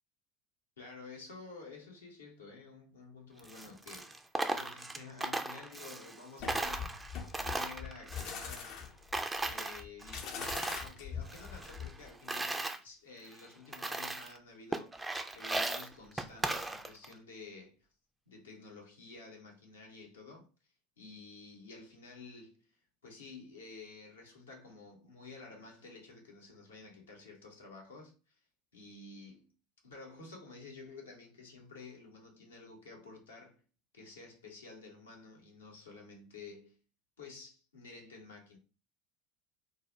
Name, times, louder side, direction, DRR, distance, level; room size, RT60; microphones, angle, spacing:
voice 1, 0.8-7.0 7.3-8.8 9.4-15.1 15.3-17.8 18.3-20.5 21.0-22.7 23.0-28.3 28.7-29.5 29.8-33.6 33.9-36.8 37.2-38.6, left 3 dB, 80° left, 0.7 m, -51 dB
Coin (dropping), 3.4-6.2 6.5-8.9 9.1-10.9 11.3-12.8 13.3-13.4 13.7-14.4 14.7-17.1, right 2 dB, 10° right, 0.3 m, -37 dB
sound 1, 6.4-12.1, left 7 dB, 50° left, 0.4 m, -43 dB
2.2 x 2.1 x 2.9 m
figure-of-eight pair, 75°, 0 cm